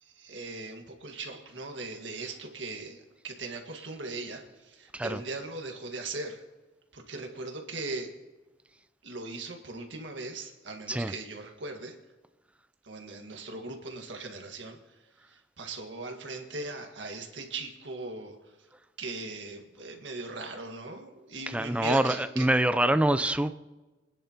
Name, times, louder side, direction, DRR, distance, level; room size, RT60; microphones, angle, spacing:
voice 1, 0.0-6.4 6.9-8.1 9.0-11.9 12.8-15.0 15.3-18.5 19.0-22.5, right 2 dB, 70° right, 1.7 m, -39 dB
voice 2, 21.5-23.6, right 1 dB, 5° right, 0.4 m, -25 dB
23.5 x 10.0 x 2.9 m
head